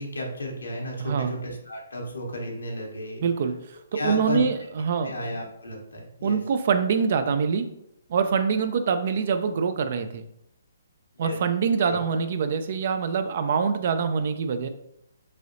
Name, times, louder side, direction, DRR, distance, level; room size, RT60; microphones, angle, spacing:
voice 1, 0.0-3.2 3.9-4.4 5.0-6.4 11.1-11.4 11.8-12.2, left 1 dB, 80° left, 0 dB, 0.9 m, -33 dB
voice 2, 1.0-1.3 3.2-5.1 6.2-7.7 8.1-10.2 11.2-14.7, right 6 dB, 50° right, 9 dB, 0.3 m, -25 dB
3.2 x 2.7 x 2.5 m, 0.80 s
figure-of-eight pair, 135°, 0 cm